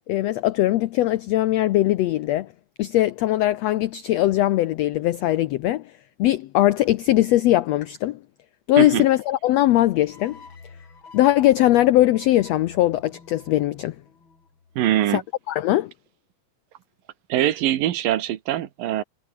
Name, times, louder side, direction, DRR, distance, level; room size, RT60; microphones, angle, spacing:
voice 1, 0.1-2.5 2.8-5.8 6.2-8.2 8.7-10.4 11.1-13.9 15.1-15.2 15.5-15.9, left 14 dB, 90° left, 1.4 m, -20 dB
sound 1, 10.1-15.3, left 4 dB, 35° left, 4.3 m, -48 dB
voice 2, 14.8-15.2 17.3-19.0, right 12 dB, 90° right, 3.1 m, -23 dB
omnidirectional pair, 3.9 m